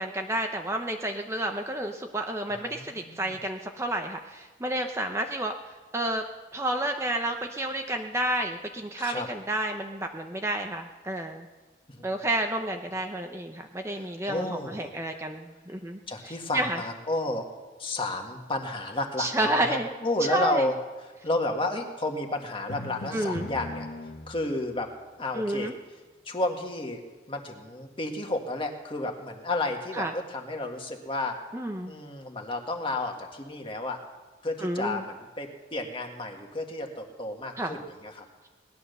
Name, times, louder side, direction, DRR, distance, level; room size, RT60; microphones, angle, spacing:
voice 1, 0.0-6.3 6.5-11.5 12.0-16.8 19.2-19.9 20.2-20.7 23.1-23.5 25.3-25.7 29.9-30.1 31.5-31.9 34.6-35.0 37.6-37.8, right 1 dB, 15° right, 4 dB, 0.7 m, -30 dB
voice 2, 13.9-14.9 16.1-17.5 17.8-20.7 21.2-23.9 24.3-24.9 25.2-25.7 26.2-31.4 31.8-34.0 34.4-38.2, left 2 dB, 30° left, 3 dB, 1.7 m, -32 dB
Drum, 22.7-24.7, left 1 dB, 55° left, 0.9 m, -39 dB
18.5 x 11.5 x 6.7 m, 1.3 s
head